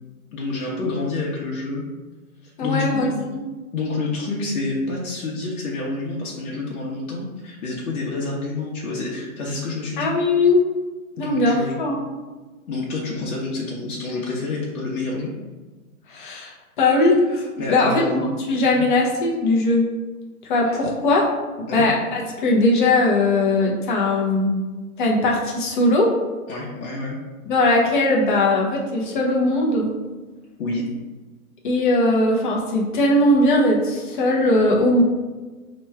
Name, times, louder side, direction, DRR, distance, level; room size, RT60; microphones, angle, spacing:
voice 1, 0.3-1.8 2.4-3.1 3.7-10.1 11.2-11.8 12.7-15.3 17.6-18.4 18.7-18.8 20.6-20.7 21.7-21.9 26.5-27.2 30.6-30.9, left 3 dB, 75° left, -4 dB, 0.9 m, -28 dB
voice 2, 2.6-3.4 10.0-10.6 11.2-12.0 16.1-19.8 20.4-21.3 21.7-24.6 25.0-26.1 27.5-29.9 31.6-35.0, left 2 dB, 35° left, -2 dB, 0.7 m, -19 dB
3.0 x 2.3 x 4.3 m, 1.3 s
hypercardioid pair, 160°, 43 cm